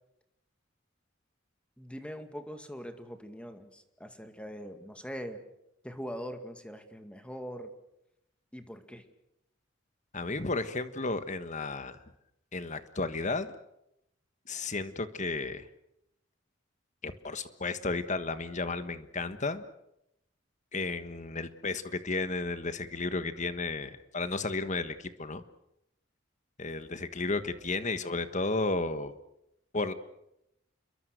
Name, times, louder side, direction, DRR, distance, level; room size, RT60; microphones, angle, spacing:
voice 1, 1.8-5.4 5.8-7.7 8.5-9.0, equal, 5° left, 7 dB, 2.1 m, -42 dB
voice 2, 10.1-12.0 12.5-13.5 14.5-15.7 17.0-19.6 20.7-25.4 26.6-29.1 29.7-29.9, left 3 dB, 40° left, 11 dB, 1.5 m, -33 dB
29.0 x 22.5 x 6.5 m, 0.82 s
head